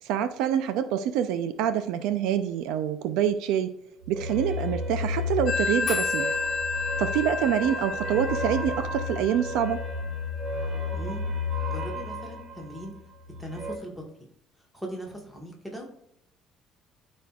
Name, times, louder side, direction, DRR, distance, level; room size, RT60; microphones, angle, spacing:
voice 1, 0.0-3.7 4.1-6.3 7.0-9.8, right 9 dB, 75° right, 10 dB, 0.5 m, -26 dB
sound 1, 4.0-13.8, left 3 dB, 30° right, 1.0 m, -33 dB
Telephone, 5.5-10.8, left 4 dB, 35° left, 0.5 m, -31 dB
voice 2, 10.9-11.2 11.7-13.0 13.4-14.0 14.7-15.8, right 1 dB, ahead, -1 dB, 1.4 m, -39 dB
12.5 x 4.3 x 2.4 m, 0.76 s
cardioid pair, 180°, 0 cm